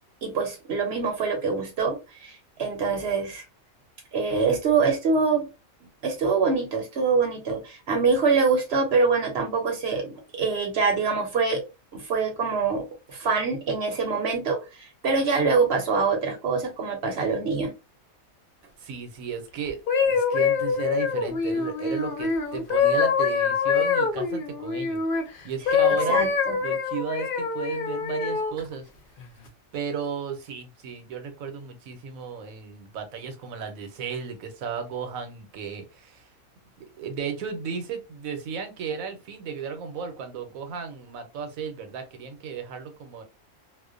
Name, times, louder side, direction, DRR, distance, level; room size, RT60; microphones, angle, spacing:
voice 1, 0.2-3.4 4.1-5.5 6.0-11.6 11.9-12.8 13.1-17.7 26.1-26.6, right 4 dB, 55° right, 0.8 m, -25 dB
voice 2, 18.8-19.8 20.0-25.0 25.4-26.3 26.6-28.9 29.7-36.2 36.8-43.2, right 6 dB, 80° right, 1.1 m, -34 dB
sound 1, 19.7-25.2 25.7-28.5 29.2-29.5, left 6 dB, 60° left, 0.6 m, -24 dB
2.4 x 2.1 x 2.4 m
omnidirectional pair, 1.4 m